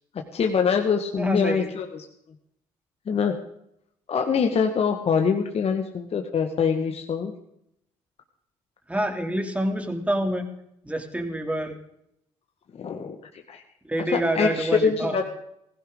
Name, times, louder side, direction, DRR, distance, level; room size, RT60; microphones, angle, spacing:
voice 1, 0.3-2.1 3.1-3.3 4.1-7.3 12.8-13.2 13.5-13.6 14.1-15.2, left 6 dB, 50° left, 3 dB, 1.6 m, -24 dB
voice 2, 1.2-1.7 8.9-10.4 10.8-11.8 13.8-15.2, right 1 dB, 10° right, 4 dB, 2.9 m, -26 dB
16.0 x 16.0 x 3.9 m, 0.77 s
hypercardioid pair, 60°, 14 cm